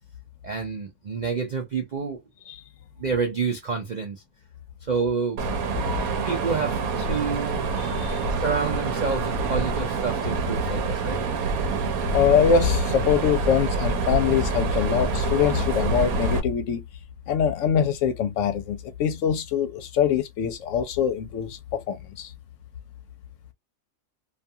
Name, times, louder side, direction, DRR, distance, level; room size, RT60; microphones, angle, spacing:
voice 1, 0.4-2.2 3.0-4.2 4.8-5.4 6.2-7.5 8.3-11.2, right 5 dB, 60° right, 0.4 m, -28 dB
Mechanisms, 5.4-16.4, right 3 dB, 90° right, 1.1 m, -26 dB
voice 2, 12.1-16.8 17.3-22.3, left 8 dB, 70° left, 0.9 m, -23 dB
2.5 x 2.3 x 2.6 m
omnidirectional pair, 1.5 m